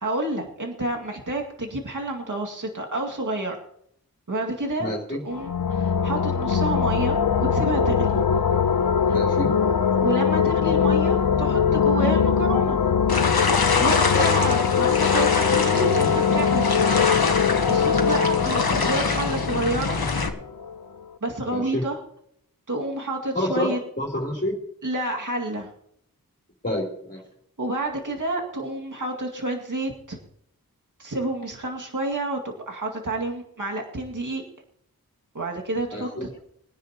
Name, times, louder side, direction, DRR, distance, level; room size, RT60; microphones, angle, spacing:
voice 1, 0.0-3.6 4.3-8.2 10.0-12.8 13.8-17.2 17.7-20.0 21.2-22.0 22.7-23.8 24.8-25.7 27.6-30.2 31.0-34.4 35.3-36.3, right 2 dB, 60° right, 0 dB, 2.2 m, -29 dB
voice 2, 4.8-5.2 9.1-9.5 14.1-14.3 21.5-21.8 23.3-23.7 24.0-24.6 26.6-27.2 35.9-36.3, left 1 dB, 30° left, -1 dB, 3.5 m, -28 dB
sound 1, 5.3-20.8, left 7 dB, 70° left, 0.7 m, -22 dB
sound 2, 13.1-20.3, left 4 dB, 90° left, 1.4 m, -25 dB
22.0 x 10.0 x 3.0 m, 0.71 s
wide cardioid pair, 40°, 36 cm